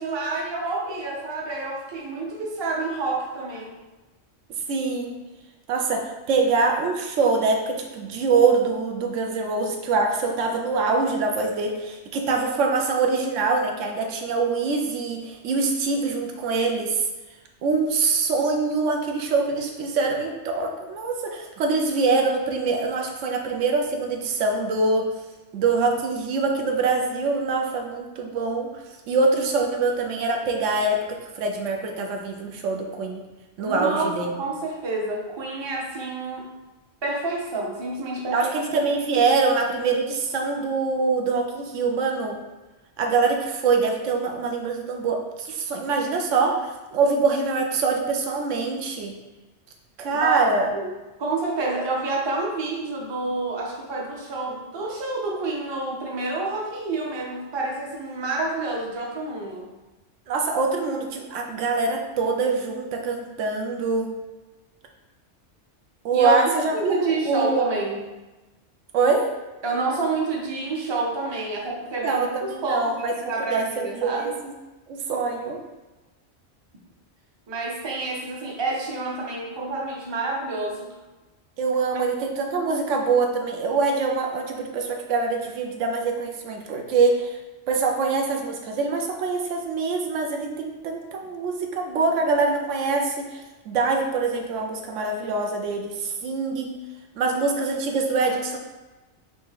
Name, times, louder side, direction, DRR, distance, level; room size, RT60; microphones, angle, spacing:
voice 1, 0.0-3.7 33.6-34.1 34.4-36.5 37.0-38.5 50.1-50.9 51.2-59.7 66.1-68.1 69.6-74.3 77.5-80.9 82.6-82.9, right 3 dB, 30° right, -2 dB, 0.6 m, -28 dB
voice 2, 4.7-5.2 5.7-17.0 17.6-25.1 25.5-28.7 29.1-31.0 31.4-33.2 33.6-34.3 38.3-42.4 43.0-49.1 50.0-50.7 60.3-64.1 66.0-67.7 68.9-69.3 72.0-73.1 73.4-74.5 74.9-75.6 81.6-87.4 87.7-96.8 97.2-98.6, right 4 dB, 85° right, 2 dB, 1.0 m, -24 dB
4.1 x 2.8 x 3.6 m, 1.1 s
omnidirectional pair, 1.2 m